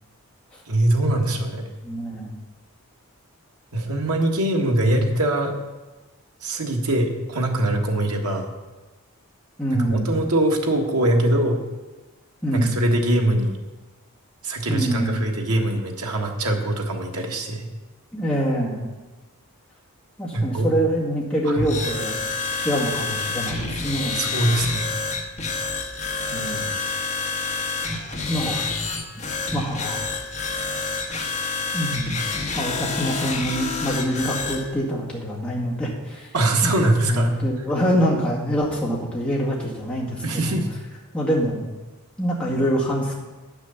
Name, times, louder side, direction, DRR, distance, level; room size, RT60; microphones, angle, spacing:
voice 1, 0.7-1.6 3.7-5.5 6.4-8.5 9.7-11.6 12.5-13.6 14.4-17.7 20.3-20.7 21.4-21.7 24.1-24.9 36.3-37.3 40.2-40.7, right 1 dB, 85° right, 2 dB, 1.5 m, -22 dB
voice 2, 1.8-2.3 4.9-5.0 9.6-10.1 12.4-12.7 14.7-15.2 18.1-18.9 20.2-22.2 22.6-24.2 26.3-26.7 27.9-28.0 28.3-28.7 29.5-30.1 31.7-32.2 32.6-36.3 36.6-36.7 37.0-40.6 41.1-41.6 42.2-43.1, equal, 5° left, -6 dB, 2.0 m, -25 dB
sound 1, 21.6-34.6, left 4 dB, 30° left, 1.2 m, -28 dB
9.1 x 6.2 x 7.0 m, 1.2 s
head